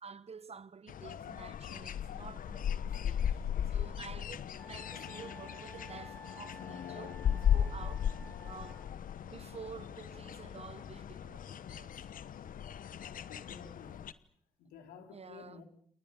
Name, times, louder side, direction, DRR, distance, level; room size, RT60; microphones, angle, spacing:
voice 1, 0.0-8.1 8.4-8.9 9.2-11.9 15.1-15.6, right 5 dB, 40° right, 1.2 m, -50 dB
sound 1, 0.9-14.1, left 9 dB, 65° left, 1.1 m, -36 dB
Wind instrument woodwind instrument, 4.6-8.9, left 1 dB, 10° left, 2.5 m, -53 dB
voice 2, 12.8-14.1 14.6-15.6, left 6 dB, 80° left, 3.5 m, -53 dB
29.5 x 28.5 x 5.4 m
hypercardioid pair, 40°, 15 cm